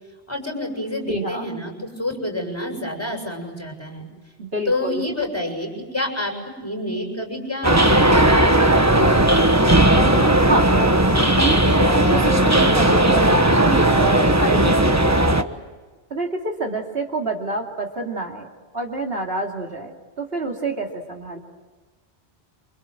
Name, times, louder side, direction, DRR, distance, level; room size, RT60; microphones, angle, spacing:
voice 1, 0.3-4.1 4.7-9.1, left 1 dB, 15° left, 3 dB, 7.1 m, -28 dB
voice 2, 1.1-1.5 4.4-5.0 9.9-10.7 11.3-15.3 16.1-18.5 18.7-21.4, right 2 dB, 65° right, 1 dB, 2.9 m, -27 dB
sound 1, 7.6-15.4, right 1 dB, 15° right, 1.3 m, -16 dB
28.0 x 26.0 x 7.8 m, 1.3 s
omnidirectional pair, 1.1 m